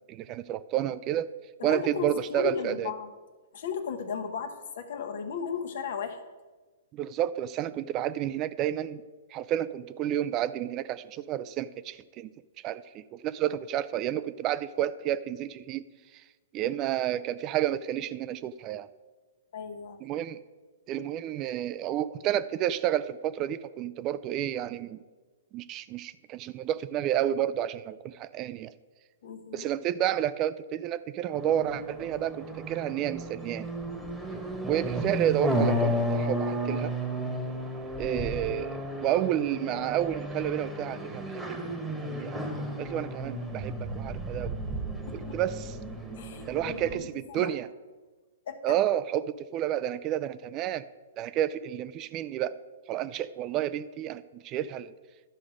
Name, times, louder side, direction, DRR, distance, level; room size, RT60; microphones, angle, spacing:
voice 1, 0.1-1.3 1.6-2.9 6.9-9.0 9.3-12.3 12.6-15.8 16.5-18.9 20.0-20.4 20.9-25.0 25.5-28.7 29.5-33.7 34.7-36.9 38.0-41.6 42.0-42.4 42.8-44.5 45.1-45.7 46.5-47.7 48.6-50.9 51.2-52.6 52.9-54.9, right 11 dB, 35° right, 16 dB, 0.3 m, -30 dB
voice 2, 1.6-3.1 3.5-6.2 19.5-20.0 29.2-29.7 45.1-45.4 46.2-47.5 48.5-48.8, left 7 dB, 65° left, 7 dB, 1.1 m, -35 dB
sound 1, 31.3-46.9, equal, 10° right, 1.2 m, -33 dB
12.0 x 5.0 x 5.0 m, 1.3 s
hypercardioid pair, 125°, 0 cm